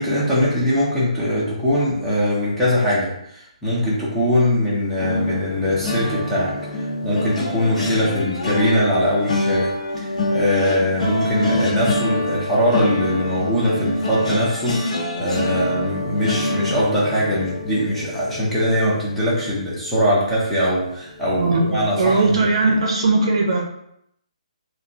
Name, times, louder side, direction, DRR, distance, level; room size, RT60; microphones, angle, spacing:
voice 1, 0.0-22.3, equal, ahead, -10 dB, 0.6 m, -21 dB
sound 1, 5.0-20.1 20.5-20.8 21.1-21.3, left 1 dB, 70° left, 1.1 m, -26 dB
voice 2, 22.0-23.6, right 3 dB, 50° right, 1 dB, 0.7 m, -18 dB
5.2 x 2.2 x 2.7 m, 0.75 s
hypercardioid pair, 170°, 4 cm